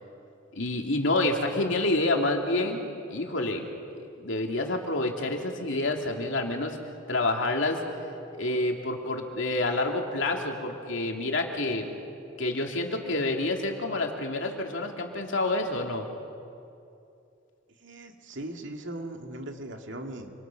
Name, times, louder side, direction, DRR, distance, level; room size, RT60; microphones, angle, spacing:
voice 1, 0.5-2.8 3.1-3.6 4.2-6.8 7.1-7.8 8.3-11.9 12.4-16.0, left 2 dB, 70° left, 2 dB, 2.7 m, -28 dB
voice 2, 17.8-20.3, right 1 dB, 70° right, 3 dB, 2.3 m, -39 dB
27.0 x 26.5 x 6.1 m, 2.6 s
head